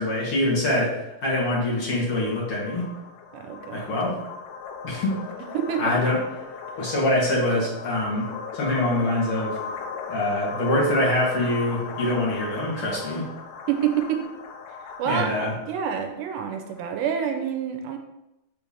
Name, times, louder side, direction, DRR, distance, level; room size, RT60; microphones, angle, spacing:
voice 1, 0.0-2.9 3.7-4.2 4.8-5.2 5.8-6.2 6.8-9.6 10.1-13.3 15.0-15.5, left 1 dB, 55° left, -6 dB, 1.6 m, -24 dB
sound 1, 1.2-17.0, left 5 dB, 80° left, 2.5 m, -38 dB
voice 2, 3.3-4.0 5.5-6.0 13.7-14.2 15.0-18.0, right 8 dB, 80° right, 4 dB, 2.7 m, -27 dB
6.7 x 3.4 x 5.6 m, 0.90 s
omnidirectional pair, 5.2 m